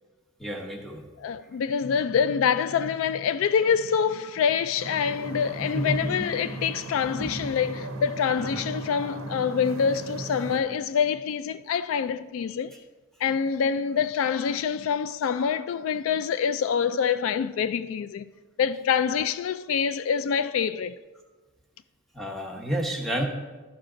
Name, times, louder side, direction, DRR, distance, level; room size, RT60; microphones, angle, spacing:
voice 1, 0.4-1.1 5.6-6.6 7.2-7.5 8.4-8.6 22.1-23.2, right 1 dB, ahead, 1.1 m, -31 dB
voice 2, 1.2-12.7 13.2-18.3 18.6-21.0, left 7 dB, 70° left, 0.3 m, -26 dB
sound 1, 4.8-10.6, right 2 dB, 70° right, 0.7 m, -37 dB
13.0 x 5.9 x 3.8 m
head